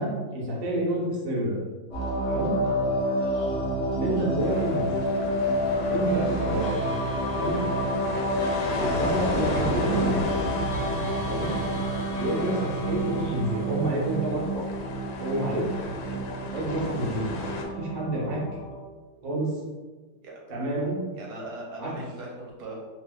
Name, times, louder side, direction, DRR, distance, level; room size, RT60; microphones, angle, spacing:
voice 1, 0.0-1.5 2.3-2.5 3.9-4.8 5.9-6.8 7.3-7.6 8.8-10.2 11.3-11.6 12.2-14.6 15.2-15.7 16.5-17.3 17.8-18.4 19.2-19.6 20.5-21.0 21.8-21.9, right 1 dB, 55° right, -5 dB, 0.5 m, -28 dB
sound 1, 1.9-18.7, equal, 30° left, 0.6 m, -29 dB
voice 2, 3.1-3.6 4.0-4.3 8.4-8.6 12.9-13.4 17.6-17.8 20.2-20.3 21.2-22.7, right 2 dB, 70° right, -2 dB, 1.1 m, -42 dB
sound 2, 4.4-17.7, left 2 dB, 85° left, 1.3 m, -35 dB
sound 3, 5.7-15.3, left 1 dB, 65° left, 0.8 m, -42 dB
2.9 x 2.1 x 3.5 m, 1.3 s
omnidirectional pair, 2.0 m